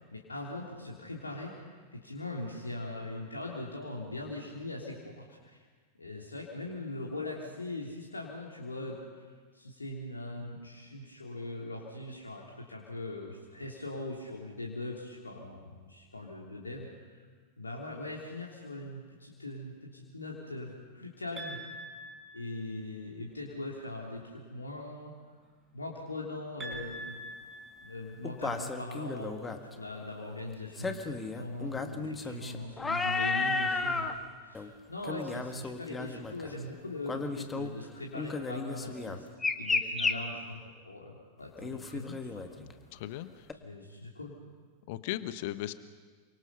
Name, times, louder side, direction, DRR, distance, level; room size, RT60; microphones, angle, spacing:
voice 1, 0.0-1.5 1.9-5.7 6.0-9.2 9.5-17.3 17.6-21.6 22.3-25.4 25.7-27.2 27.8-34.1 34.4-39.3 39.6-40.6 40.9-43.0 43.6-44.3, left 2 dB, 80° left, -2 dB, 3.3 m, -41 dB
sound 1, 21.4-23.0 26.6-28.6, right 1 dB, 15° right, 5.4 m, -45 dB
sound 2, 26.7-26.8 28.2-29.6 30.8-34.1 34.5-34.7 35.0-36.5 37.1-37.7 38.2-40.2 41.6-42.7 43.5-43.6, left 3 dB, 15° left, 1.7 m, -33 dB
voice 2, 42.9-43.5 44.9-45.7, left 14 dB, 50° left, 13 dB, 1.1 m, -37 dB
29.0 x 25.5 x 5.6 m, 1.5 s
figure-of-eight pair, 90°, 0 cm